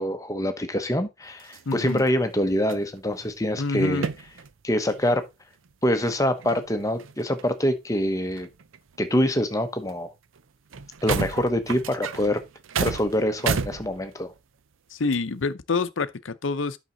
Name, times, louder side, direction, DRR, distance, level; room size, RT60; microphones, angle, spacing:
voice 1, 0.0-4.1 4.6-5.2 5.8-8.5 9.0-10.1 11.0-12.4 12.8-14.3, left 1 dB, 15° left, 0.9 m, -25 dB
sound 1, 1.4-2.2 2.5-3.3 4.0-4.5 4.9-5.2 5.6-5.7 6.0-7.5 8.3-9.4 9.9-10.0 10.4-10.5 10.7-14.4 15.1-15.2, right 5 dB, 80° right, 0.6 m, -32 dB
voice 2, 1.7-2.0 3.6-4.1 14.9-16.8, left 3 dB, 70° left, 0.7 m, -27 dB
9.0 x 6.0 x 4.0 m
head